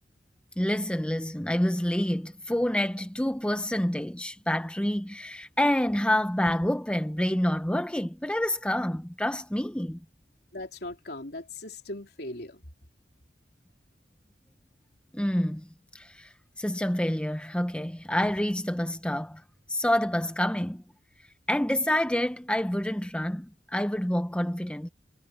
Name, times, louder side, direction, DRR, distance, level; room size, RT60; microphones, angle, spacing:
voice 1, 0.6-10.0 15.1-15.7 15.9-19.4 19.7-20.8 21.5-24.9, left 1 dB, 5° left, 0.8 m, -28 dB
voice 2, 10.5-12.7, left 1 dB, 65° left, 3.8 m, -39 dB
head